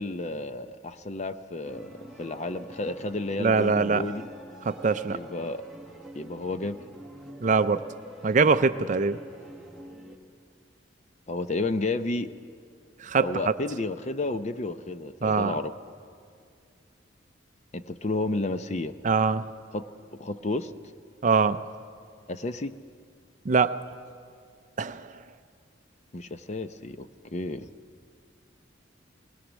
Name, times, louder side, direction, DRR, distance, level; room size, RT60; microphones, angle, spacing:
voice 1, 0.0-4.3 5.1-5.6 6.2-6.8 11.3-12.3 13.2-15.7 17.7-19.0 19.7-19.9 20.2-20.7 22.3-22.8 26.1-27.7, left 2 dB, 35° left, 11 dB, 0.6 m, -31 dB
sound 1, 1.6-10.2, right 1 dB, ahead, 1.5 m, -46 dB
voice 2, 3.4-4.0 4.6-5.2 7.4-7.8 8.2-9.2 13.0-13.3 15.2-15.5 19.0-19.4 21.2-21.6 23.5-23.7 24.8-25.1, right 4 dB, 40° right, 11 dB, 0.5 m, -23 dB
20.5 x 20.0 x 6.2 m, 2.3 s
head